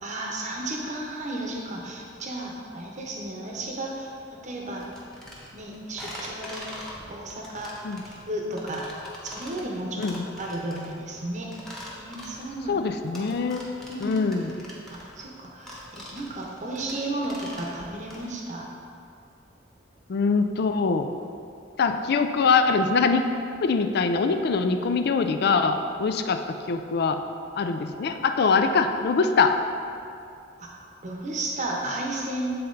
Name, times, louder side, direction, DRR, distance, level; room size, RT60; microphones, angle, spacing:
voice 1, 0.0-4.9 5.5-6.7 7.1-7.8 8.3-8.9 9.2-11.5 11.9-13.1 13.9-14.2 14.9-18.7 30.6-30.7 31.0-32.5, right 1 dB, 40° right, -1 dB, 0.9 m, -33 dB
sound 1, 4.8-18.3, equal, ahead, 1.0 m, -43 dB
voice 2, 12.7-13.6 14.0-14.5 20.1-21.1 21.8-23.2 23.6-27.2 27.6-29.6, left 4 dB, 55° left, 7 dB, 0.4 m, -23 dB
8.5 x 4.1 x 3.9 m, 2.5 s
head